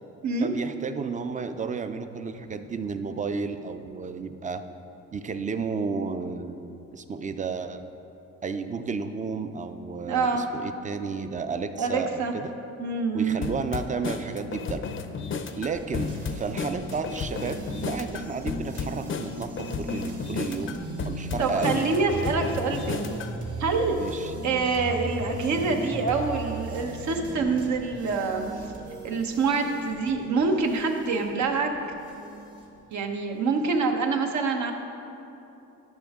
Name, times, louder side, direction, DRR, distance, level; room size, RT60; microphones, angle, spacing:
voice 1, 0.4-4.6 5.1-7.8 8.4-12.5 13.1-14.8 15.6-17.6 17.9-21.9 24.0-24.3, right 4 dB, 25° right, 9 dB, 0.5 m, -32 dB
voice 2, 10.1-10.4 11.8-12.3 12.8-13.4 21.4-23.1 23.6-24.0 24.4-28.5 29.0-31.7 32.9-34.7, right 4 dB, 70° right, 4 dB, 0.9 m, -26 dB
sound 1, 13.4-23.4, left 5 dB, 45° left, 0.5 m, -33 dB
sound 2, 15.7-33.0, right 2 dB, 50° right, 1.8 m, -38 dB
12.5 x 5.4 x 3.6 m, 2.9 s
cardioid pair, 90°, 30 cm